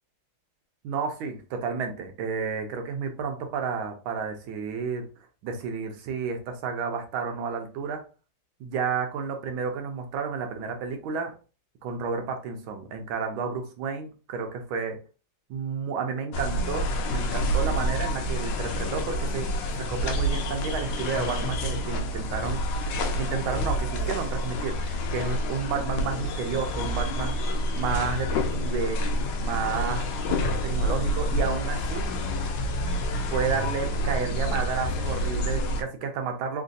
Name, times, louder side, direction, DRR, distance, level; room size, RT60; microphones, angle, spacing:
voice 1, 0.8-5.1 5.4-8.0 8.6-11.4 11.8-15.0 15.5-22.8 23.2-29.0 29.4-30.1 30.6-32.1 33.1-36.6, right 5 dB, 80° right, 5 dB, 1.5 m, -31 dB
sound 1, 16.3-35.8, equal, 75° left, 1.1 m, -28 dB
3.8 x 2.6 x 2.5 m, 0.34 s
omnidirectional pair, 2.3 m